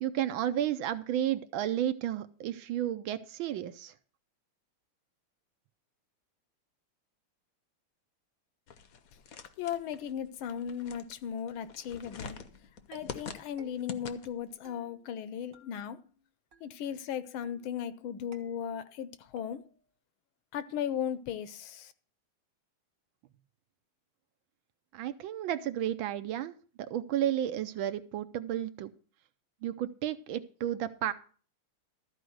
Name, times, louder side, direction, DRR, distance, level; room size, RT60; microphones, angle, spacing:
voice 1, 0.0-3.9 24.9-28.9 29.6-31.1, right 11 dB, 75° right, 1.3 m, -32 dB
sound 1, 8.7-14.5, left 6 dB, 60° left, 0.9 m, -45 dB
voice 2, 9.6-12.4 12.9-16.0 16.6-19.6 20.5-21.9, left 9 dB, 75° left, 1.4 m, -36 dB
sound 2, 12.2-12.6 12.9-13.3 13.6-14.1 14.6-15.2 15.5-16.2 16.5-17.0 17.4-17.9 18.3-19.0 19.4-19.9, right 3 dB, 45° right, 1.4 m, -58 dB
13.0 x 4.8 x 7.7 m
omnidirectional pair, 2.4 m